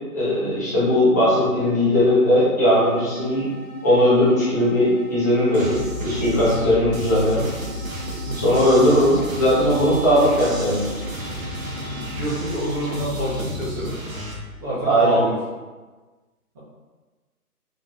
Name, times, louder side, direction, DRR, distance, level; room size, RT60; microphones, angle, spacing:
voice 1, 0.1-3.5 3.8-7.5 8.3-10.9 14.9-15.2, equal, 10° left, -12 dB, 0.6 m, -18 dB
sound 1, 2.7-13.1, left 2 dB, 75° left, 1.3 m, -40 dB
sound 2, 5.5-14.3, equal, 60° right, 1.0 m, -32 dB
voice 2, 8.2-8.6 11.8-14.0 14.6-15.3, right 1 dB, 15° right, -11 dB, 0.9 m, -28 dB
3.8 x 3.7 x 2.4 m, 1.3 s
figure-of-eight pair, 135°, 46 cm